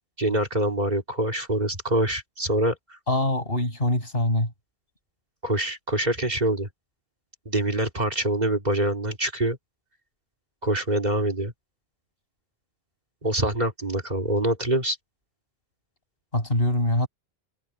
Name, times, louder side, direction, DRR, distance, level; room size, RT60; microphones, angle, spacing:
voice 1, 0.2-3.0 5.4-6.7 7.4-9.6 10.6-11.5 13.2-15.0, right 1 dB, 40° right, 3.0 m, -25 dB
voice 2, 3.1-4.5 16.3-17.1, left 1 dB, 65° left, 6.8 m, -23 dB
omnidirectional pair, 1.1 m